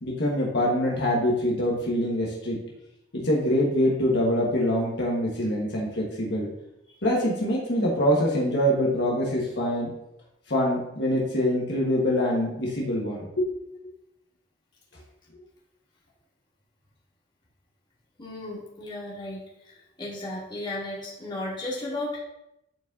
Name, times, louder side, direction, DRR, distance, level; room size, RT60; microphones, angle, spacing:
voice 1, 0.0-2.6 3.2-6.5 7.0-9.9 10.5-13.5 15.3-15.4, equal, 60° left, -3 dB, 1.4 m, -24 dB
voice 2, 18.2-19.4 20.0-22.2, left 1 dB, 25° left, -6 dB, 1.9 m, -34 dB
10.0 x 4.6 x 2.7 m, 0.84 s
head